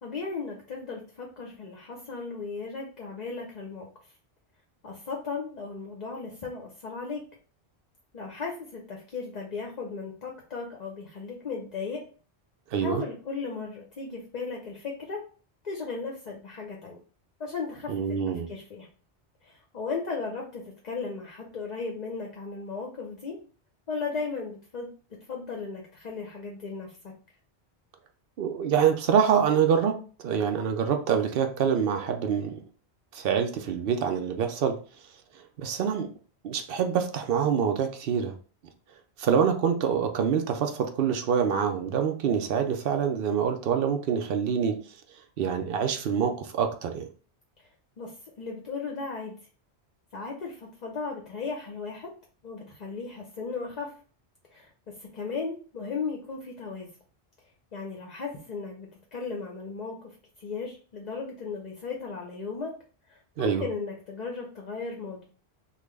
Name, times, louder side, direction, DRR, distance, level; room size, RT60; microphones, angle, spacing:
voice 1, 0.0-3.9 4.8-7.2 8.1-12.0 12.8-15.2 15.6-17.0 17.4-18.2 18.5-18.9 19.4-23.4 23.9-27.1 48.0-49.3 50.1-52.1 52.4-53.9 54.5-56.9 57.7-62.7 63.1-65.2, left 4 dB, 45° left, 1 dB, 0.6 m, -36 dB
voice 2, 12.7-13.0 17.9-18.5 28.4-30.0 30.2-32.6 33.1-34.8 35.6-36.1 36.4-38.3 39.2-44.8 45.4-47.1 63.4-63.7, right 7 dB, 65° right, 6 dB, 0.8 m, -25 dB
3.6 x 2.4 x 3.1 m, 0.39 s
omnidirectional pair, 1.1 m